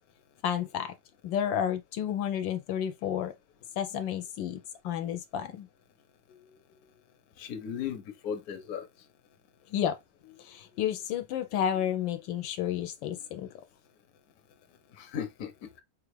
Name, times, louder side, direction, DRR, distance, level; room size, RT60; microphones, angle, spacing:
voice 1, 0.4-0.9 1.2-3.3 3.8-5.7 9.7-10.0 10.2-13.5, left 9 dB, 80° left, 1.3 m, -31 dB
voice 2, 7.4-8.9 15.0-15.5, left 8 dB, 60° left, 1.1 m, -36 dB
5.0 x 2.4 x 3.1 m
omnidirectional pair, 2.0 m